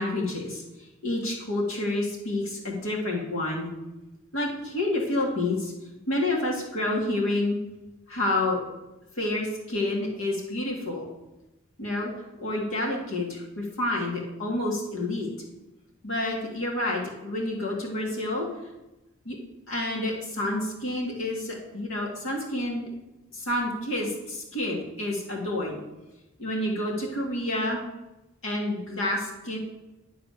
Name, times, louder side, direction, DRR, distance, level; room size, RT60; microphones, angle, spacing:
voice 1, 0.0-3.7 4.3-5.7 6.1-7.6 8.1-8.6 9.1-11.0 11.8-15.3 16.0-18.5 19.2-19.4 19.7-22.9 23.3-25.8 26.4-27.8 28.4-29.6, left 1 dB, 75° left, -2 dB, 2.1 m, -29 dB
10.5 x 3.9 x 6.6 m, 0.99 s
head